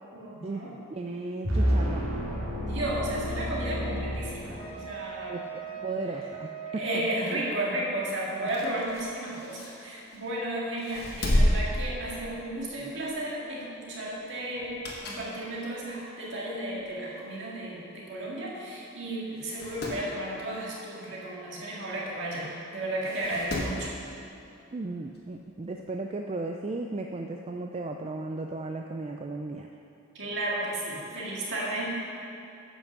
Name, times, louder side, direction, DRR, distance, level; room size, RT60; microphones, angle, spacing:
voice 1, 0.1-0.7 2.6-5.4 6.7-23.9 30.1-32.0, right 1 dB, 55° right, -5 dB, 2.1 m, -33 dB
voice 2, 0.9-2.2 5.3-7.4 24.7-29.7, right 2 dB, 30° right, 3 dB, 0.3 m, -35 dB
sound 1, 1.4-4.9, equal, 75° right, 2.6 m, -29 dB
Wind instrument woodwind instrument, 4.6-8.4, right 7 dB, 25° left, 1.5 m, -42 dB
sound 2, 8.3-10.3 10.8-12.7 13.0-13.2 14.5-15.3 15.8-15.9 16.8-16.9 17.1-17.2 17.4-17.5 18.4-18.6 18.9-19.0 19.4-20.0 21.9-22.0 23.0-23.8 25.1-25.2, left 1 dB, 45° left, 1.4 m, -31 dB
9.7 x 5.9 x 6.6 m, 2.7 s
head